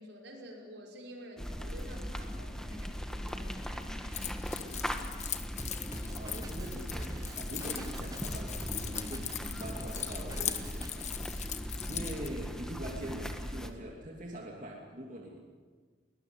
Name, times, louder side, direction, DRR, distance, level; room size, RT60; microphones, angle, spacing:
voice 1, 0.0-4.4 11.5-12.1, equal, 75° right, 0 dB, 5.7 m, -50 dB
sound 1, 1.4-13.7, equal, 5° left, 1.4 m, -39 dB
Keys jangling, 4.1-12.3, left 10 dB, 40° left, 1.4 m, -40 dB
Drum kit, 5.6-10.9, right 1 dB, 20° right, 0.8 m, -45 dB
voice 2, 5.9-11.4 11.9-15.4, right 1 dB, 45° right, -1 dB, 2.8 m, -43 dB
22.0 x 20.0 x 9.4 m, 1.5 s
head